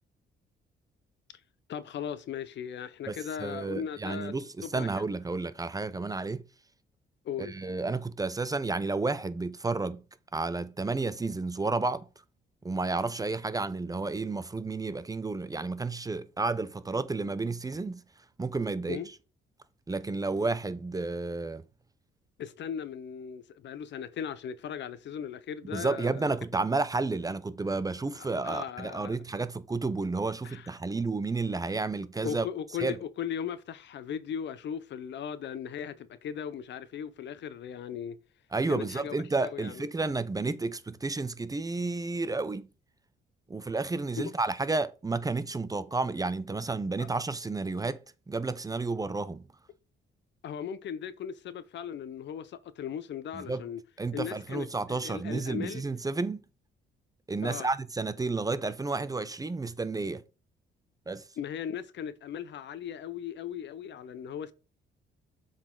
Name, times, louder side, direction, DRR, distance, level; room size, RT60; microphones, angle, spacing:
voice 1, 1.7-4.3 4.6-4.9 7.2-7.5 18.9-19.1 22.4-26.3 28.1-29.1 30.4-30.7 32.2-38.2 38.7-39.9 44.1-44.2 47.0-47.1 50.4-53.8 54.1-55.8 57.4-57.7 61.4-64.5, left 8 dB, 65° left, 0.7 m, -38 dB
voice 2, 3.1-6.4 7.4-10.0 10.3-12.0 12.6-18.0 18.4-19.0 19.9-21.6 25.6-32.4 32.8-33.0 38.5-42.7 43.5-48.0 48.3-49.4 53.3-53.6 54.0-56.4 57.3-60.2 61.1-61.2, right 3 dB, 20° right, 0.5 m, -31 dB
7.2 x 4.1 x 3.8 m
cardioid pair, 90°, 20 cm